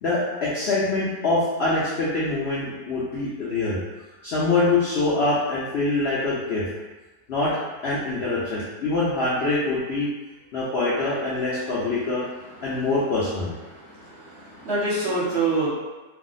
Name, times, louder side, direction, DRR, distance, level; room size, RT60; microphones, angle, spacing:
voice 1, 0.0-3.8 4.2-6.6 7.3-10.1 10.5-12.2 12.6-13.5, left 2 dB, 70° left, -7 dB, 0.6 m, -24 dB
voice 2, 13.7-15.7, right 3 dB, 55° right, -8 dB, 0.8 m, -26 dB
2.7 x 2.0 x 3.8 m, 1.2 s
omnidirectional pair, 1.7 m